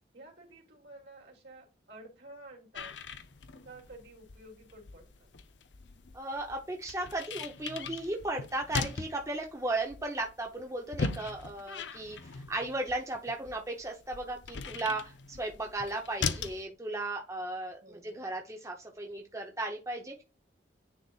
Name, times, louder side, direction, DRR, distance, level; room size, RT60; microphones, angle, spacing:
voice 1, 0.1-2.9 3.6-5.3 17.8-18.4, right 2 dB, 60° right, 0 dB, 2.9 m, -52 dB
sound 1, 2.7-16.6, left 4 dB, 75° left, 0.7 m, -40 dB
voice 2, 6.1-20.2, right 2 dB, 15° right, 2 dB, 0.8 m, -36 dB
9.7 x 4.1 x 2.4 m, 0.30 s
head